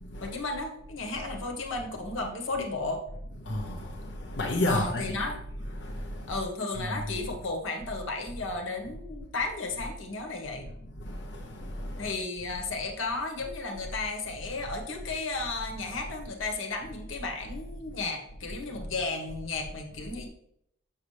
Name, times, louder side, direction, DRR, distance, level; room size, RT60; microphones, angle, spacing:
voice 1, 0.2-3.0 4.7-5.4 6.3-10.6 12.0-20.3, left 3 dB, 75° left, 1.3 m, -34 dB
voice 2, 3.4-5.2 5.7-6.3 6.8-7.0 11.0-12.1, left 1 dB, 55° left, 0.7 m, -32 dB
7.0 x 6.5 x 3.3 m
head